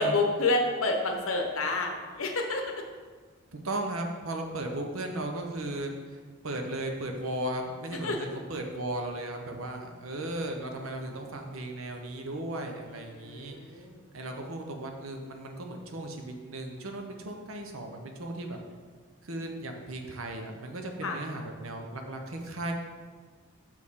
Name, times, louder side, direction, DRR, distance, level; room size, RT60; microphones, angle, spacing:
voice 1, 0.0-2.6 8.0-8.2 13.0-14.0 21.0-21.2, left 2 dB, 75° left, 3 dB, 0.9 m, -29 dB
voice 2, 3.5-5.9 6.4-13.9 14.1-18.6 19.2-22.7, right 1 dB, 75° right, 3 dB, 0.8 m, -36 dB
6.3 x 6.2 x 3.7 m, 1.5 s
head